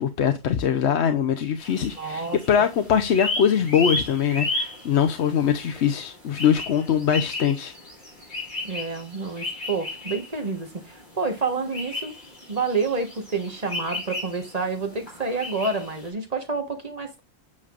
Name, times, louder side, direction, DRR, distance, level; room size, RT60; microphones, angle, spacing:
voice 1, 0.0-7.7, left 8 dB, 80° left, 1.0 m, -22 dB
sound 1, 1.6-16.1, left 2 dB, 45° left, 4.5 m, -34 dB
voice 2, 1.9-2.4 8.6-12.1 12.5-17.2, right 4 dB, 35° right, 1.4 m, -28 dB
8.6 x 6.6 x 2.5 m
omnidirectional pair, 1.1 m